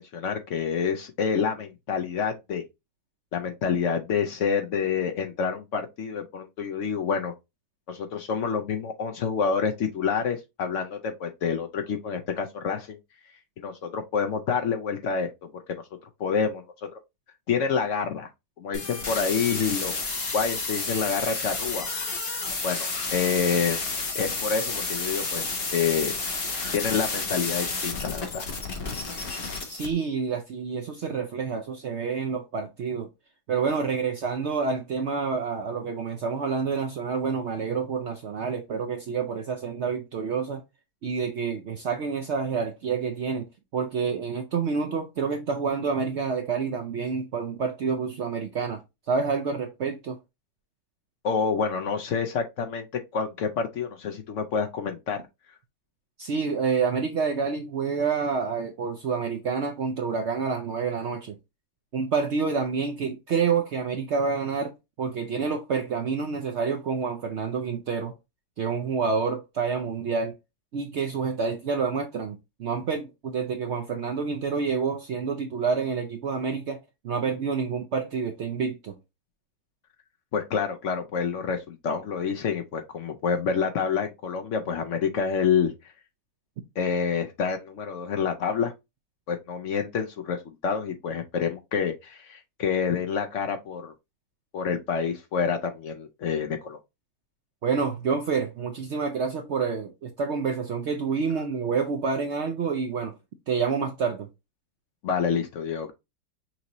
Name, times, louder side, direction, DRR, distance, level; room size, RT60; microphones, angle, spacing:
voice 1, 0.0-2.6 3.3-7.3 7.9-13.0 13.6-15.8 16.2-16.6 16.9-17.0 17.5-18.3 18.6-19.9 20.3-21.9 22.6-23.8 24.1-26.1 26.7-28.4 51.2-52.9 53.1-55.2 80.3-85.7 86.8-88.7 89.3-93.9 94.5-96.8 105.0-105.9, left 6 dB, 65° left, 0.8 m, -28 dB
sound 1, 18.7-29.9, left 3 dB, 40° left, 1.1 m, -31 dB
voice 2, 29.7-33.1 33.5-40.6 41.0-48.8 49.1-50.2 56.2-61.4 61.9-68.1 68.6-70.3 70.7-79.0 97.6-103.2 103.5-104.3, right 5 dB, 70° right, 0.6 m, -28 dB
5.9 x 2.7 x 2.9 m
omnidirectional pair, 1.8 m